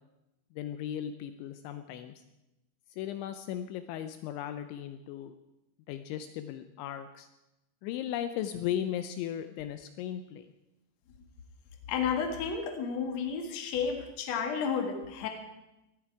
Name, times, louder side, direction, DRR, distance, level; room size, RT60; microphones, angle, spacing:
voice 1, 0.6-2.1 3.0-5.4 5.9-7.3 7.8-10.5, left 10 dB, 80° left, 9 dB, 2.8 m, -36 dB
voice 2, 11.9-15.3, left 6 dB, 55° left, 4 dB, 1.9 m, -32 dB
19.0 x 13.5 x 4.7 m, 0.94 s
omnidirectional pair, 5.7 m